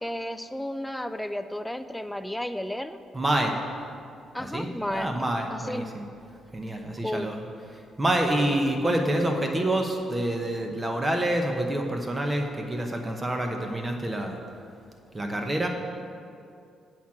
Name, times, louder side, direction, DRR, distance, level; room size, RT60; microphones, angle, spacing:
voice 1, 0.0-3.0 4.3-5.9 7.0-7.3, left 1 dB, 5° left, 10 dB, 0.3 m, -33 dB
voice 2, 3.1-3.5 4.4-6.1 6.5-7.5 8.0-14.3 15.1-15.7, right 1 dB, 20° right, 3 dB, 0.9 m, -27 dB
8.3 x 4.4 x 7.3 m, 2.4 s
cardioid pair, 90°, 0 cm